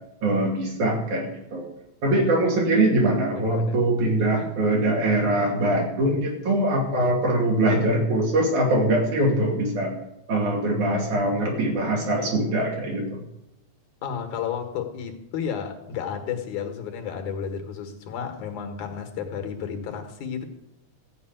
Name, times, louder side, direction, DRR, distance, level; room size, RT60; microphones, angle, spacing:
voice 1, 0.2-1.7 2.0-9.9 10.3-13.2, right 1 dB, 75° right, 4.0 m, -22 dB
voice 2, 3.3-3.9 7.0-7.2 14.0-20.4, left 7 dB, 75° left, 2.8 m, -32 dB
14.0 x 5.4 x 9.0 m
omnidirectional pair, 3.5 m